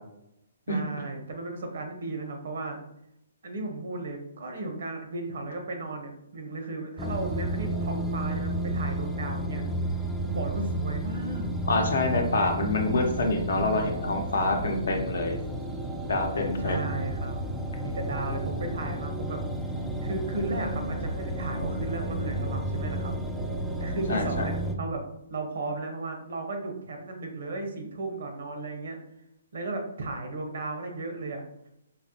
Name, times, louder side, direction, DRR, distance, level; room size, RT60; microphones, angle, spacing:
voice 1, 0.7-2.8 3.4-9.6 10.2-11.5 16.6-17.5 17.7-19.4 20.0-23.1 23.8-25.0 25.3-29.0 29.5-31.4, right 2 dB, 70° right, 4 dB, 0.8 m, -35 dB
sound 1, 7.0-24.8, right 1 dB, ahead, 0.3 m, -32 dB
voice 2, 11.7-15.4 16.0-17.0 24.1-24.5, left 2 dB, 75° left, 3 dB, 0.7 m, -26 dB
4.0 x 2.1 x 2.8 m, 0.81 s
hypercardioid pair, 145°, 0 cm